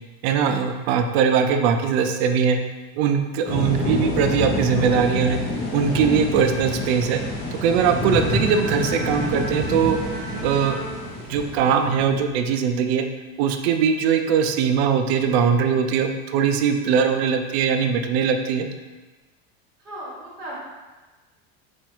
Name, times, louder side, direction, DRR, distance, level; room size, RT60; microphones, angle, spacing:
voice 1, 0.2-2.6 3.0-5.4 5.7-7.2 7.5-10.0 10.4-10.7 11.3-13.0 13.4-18.7, right 7 dB, 75° right, 6 dB, 0.5 m, -21 dB
sound 1, 3.5-12.3, left 2 dB, 30° left, 0.7 m, -28 dB
Bowed string instrument, 8.0-12.2, right 3 dB, 30° right, 0.6 m, -36 dB
voice 2, 19.8-20.5, right 1 dB, 10° right, -7 dB, 1.3 m, -37 dB
4.3 x 2.4 x 4.4 m, 1.2 s
cardioid pair, 170°, 32 cm